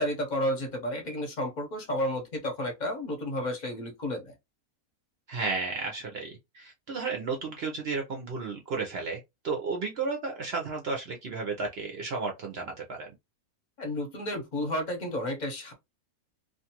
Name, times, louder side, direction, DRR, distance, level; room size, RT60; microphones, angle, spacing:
voice 1, 0.0-4.3 13.8-15.7, left 1 dB, 40° left, 0.7 m, -31 dB
voice 2, 5.3-13.1, right 4 dB, 60° right, 0.7 m, -33 dB
2.5 x 2.4 x 2.8 m
omnidirectional pair, 1.6 m